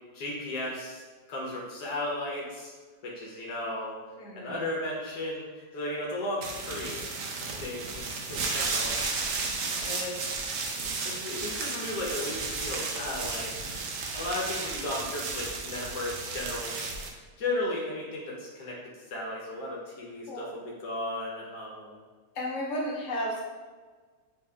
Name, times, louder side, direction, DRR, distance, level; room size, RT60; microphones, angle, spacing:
voice 1, 0.1-1.0 1.3-2.7 3.0-4.0 4.4-7.0 7.6-9.4 9.8-10.2 11.0-13.5 14.1-16.7 17.4-22.0, left 1 dB, 75° left, -4 dB, 1.4 m, -35 dB
voice 2, 4.2-4.7 9.4-9.5 20.3-20.5 22.3-23.4, equal, 50° left, -5 dB, 1.3 m, -33 dB
sound 1, 6.4-17.1, right 4 dB, 65° right, 0.9 m, -33 dB
7.3 x 3.0 x 2.3 m, 1.4 s
omnidirectional pair, 1.8 m